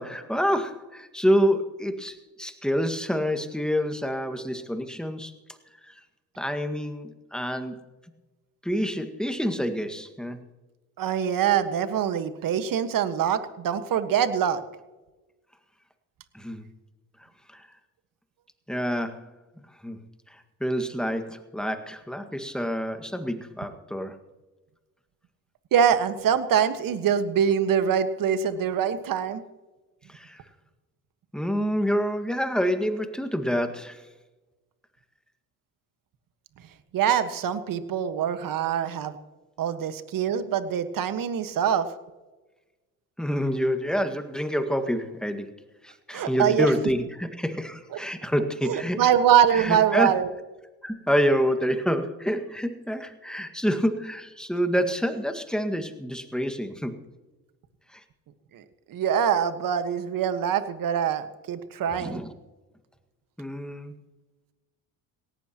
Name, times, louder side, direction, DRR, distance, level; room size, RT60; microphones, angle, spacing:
voice 1, 0.0-5.3 5.9-6.0 6.4-7.8 8.6-10.4 16.3-16.7 17.5-17.7 18.7-19.3 19.8-20.0 20.6-24.2 30.1-30.4 31.3-34.0 43.2-45.5 45.8-49.0 49.5-50.1 50.8-57.0 62.0-62.3 63.4-63.9, equal, ahead, 7 dB, 1.8 m, -27 dB
voice 2, 11.0-14.6 25.7-29.4 36.9-39.2 39.6-41.9 46.1-46.7 48.6-50.3 58.5-58.6 58.9-62.2, right 8 dB, 55° right, 10 dB, 1.6 m, -24 dB
18.0 x 17.5 x 3.0 m, 1.2 s
hypercardioid pair, 70°, 41 cm